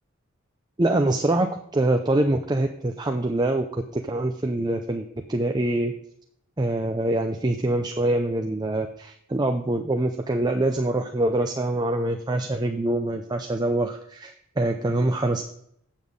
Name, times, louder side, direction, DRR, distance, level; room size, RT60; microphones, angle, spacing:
voice 1, 0.8-5.9 6.6-15.4, right 1 dB, 20° right, 4 dB, 0.6 m, -25 dB
8.3 x 7.3 x 5.3 m, 0.70 s
head